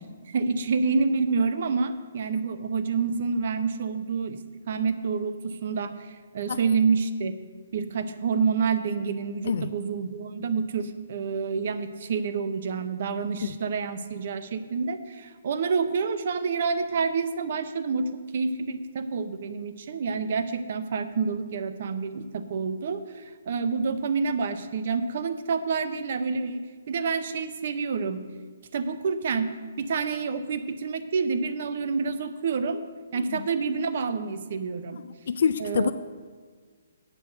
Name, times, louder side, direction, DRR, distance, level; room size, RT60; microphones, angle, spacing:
voice 1, 0.2-4.4 4.7-7.3 7.7-28.2 28.7-32.8 33.1-35.0 35.6-35.9, right 5 dB, 40° right, 11 dB, 0.6 m, -28 dB
voice 2, 33.2-33.5 34.9-35.9, left 6 dB, 45° left, 12 dB, 0.3 m, -27 dB
8.4 x 6.8 x 7.7 m, 1.5 s
hypercardioid pair, 175°, 0 cm